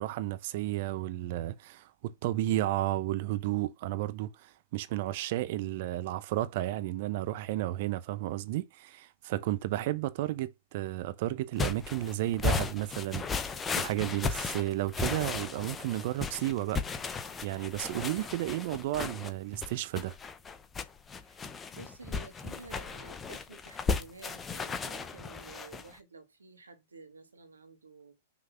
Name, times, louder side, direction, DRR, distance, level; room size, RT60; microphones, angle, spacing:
voice 1, 0.0-16.8 17.4-20.2, right 15 dB, 50° right, 0.8 m, -33 dB
sound 1, 11.6-25.9, left 4 dB, 15° left, 0.9 m, -35 dB
voice 2, 21.2-28.2, right 4 dB, 80° right, 1.7 m, -52 dB
6.2 x 3.8 x 5.8 m
figure-of-eight pair, 105°, 0 cm